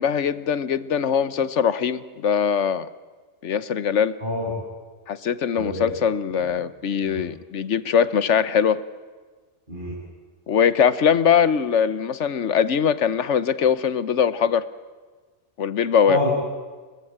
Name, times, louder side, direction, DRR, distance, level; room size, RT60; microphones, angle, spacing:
voice 1, 0.0-2.9 3.4-4.1 5.1-8.8 10.5-14.6 15.6-16.2, left 7 dB, 90° left, 15 dB, 1.3 m, -21 dB
voice 2, 4.2-4.5 5.6-5.9 7.0-7.3 9.7-9.9 16.1-16.3, left 1 dB, 45° right, -6 dB, 7.6 m, -27 dB
29.5 x 20.5 x 8.7 m, 1.4 s
omnidirectional pair, 1.2 m